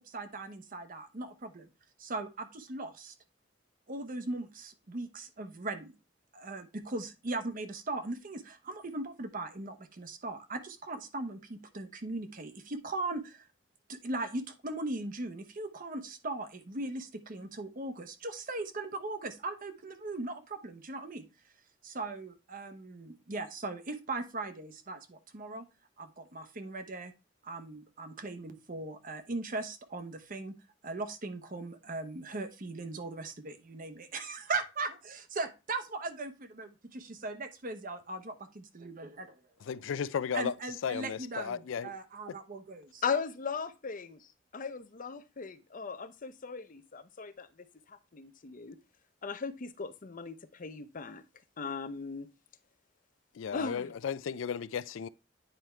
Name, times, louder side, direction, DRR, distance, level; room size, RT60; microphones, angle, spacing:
voice 1, 0.0-1.7 2.0-3.1 3.9-5.9 6.3-13.5 13.9-21.3 21.8-25.7 26.0-27.1 27.4-30.5 30.8-39.4 40.3-43.0, right 2 dB, 45° right, 0.9 m, -39 dB
voice 2, 39.6-40.5 40.8-41.9 53.3-55.1, left 7 dB, 90° left, 0.4 m, -34 dB
voice 3, 43.0-48.8 49.2-51.2 51.6-52.3 53.5-53.9, left 5 dB, 45° left, 0.6 m, -38 dB
9.1 x 3.5 x 4.4 m
head